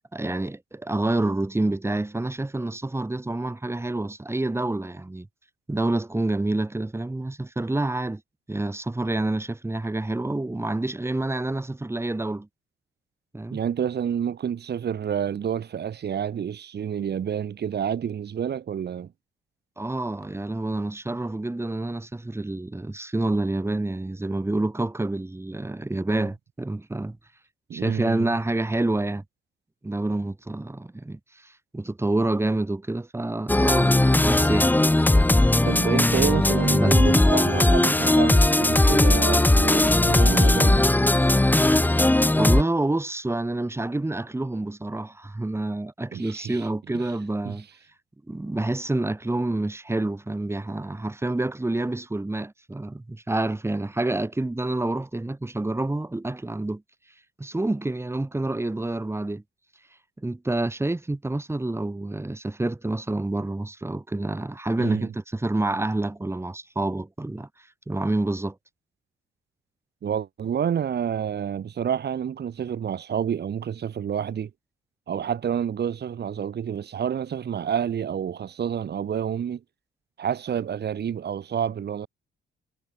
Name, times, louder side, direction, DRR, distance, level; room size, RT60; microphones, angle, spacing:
voice 1, 0.0-5.3 5.7-8.2 8.5-12.5 13.3-13.6 19.8-27.2 27.7-29.2 29.8-34.7 35.3-35.4 36.8-36.9 42.4-47.7 48.3-56.8 57.4-59.4 60.2-67.5 67.9-68.6, right 2 dB, 15° right, 4.3 m, -28 dB
voice 2, 13.5-19.1 27.7-28.4 35.6-40.8 46.1-46.6 46.9-47.1 47.4-47.6 64.8-65.1 70.0-74.5 75.1-79.6 80.2-82.1, right 8 dB, 55° right, 6.3 m, -29 dB
sound 1, 33.5-42.6, left 1 dB, 10° left, 1.2 m, -18 dB
cardioid pair, 90°, 20 cm